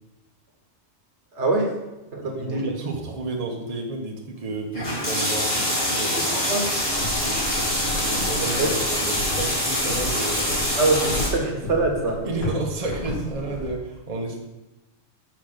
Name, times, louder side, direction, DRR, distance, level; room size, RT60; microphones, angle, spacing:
voice 1, 1.3-1.7 2.1-2.6 6.3-6.7 8.6-8.7 10.8-12.2, right 2 dB, 60° right, 1 dB, 1.6 m, -23 dB
voice 2, 2.2-6.2 7.2-7.4 7.8-10.8 12.2-14.4, right 2 dB, 30° right, 0 dB, 0.9 m, -31 dB
sound 1, 4.7-11.3, left 1 dB, 40° left, 2.4 m, -25 dB
sound 2, 6.8-13.7, left 1 dB, 75° left, 3.0 m, -34 dB
6.0 x 4.9 x 6.5 m, 1.0 s
omnidirectional pair, 1.3 m